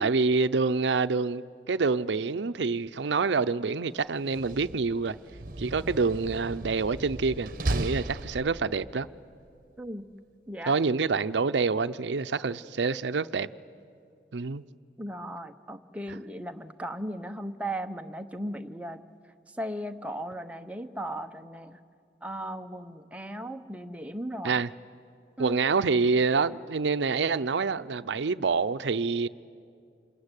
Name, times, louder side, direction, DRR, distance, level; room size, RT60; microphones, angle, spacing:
voice 1, 0.0-5.2 5.6-9.1 10.7-13.5 14.3-14.6 24.4-24.7 25.4-29.3, right 4 dB, 90° right, 0.6 m, -27 dB
Slam, 4.2-8.9, right 2 dB, 50° right, 1.0 m, -35 dB
voice 2, 15.0-19.0 19.6-21.8 22.2-24.6 25.4-25.6, right 1 dB, 10° right, 0.8 m, -37 dB
26.5 x 21.5 x 9.8 m
head